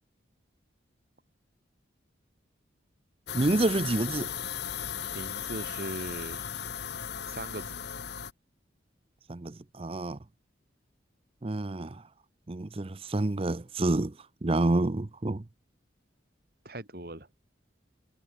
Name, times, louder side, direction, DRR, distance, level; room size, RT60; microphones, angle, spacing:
sound 1, 3.3-8.3, left 8 dB, 60° left, 1.1 m, -36 dB
voice 1, 3.3-4.3 9.3-10.2 11.4-12.0 12.5-14.1 14.4-15.4, right 2 dB, 30° right, 0.6 m, -28 dB
voice 2, 5.1-6.4 6.8-7.0 7.3-7.8 16.6-17.3, right 1 dB, 50° right, 3.8 m, -39 dB
head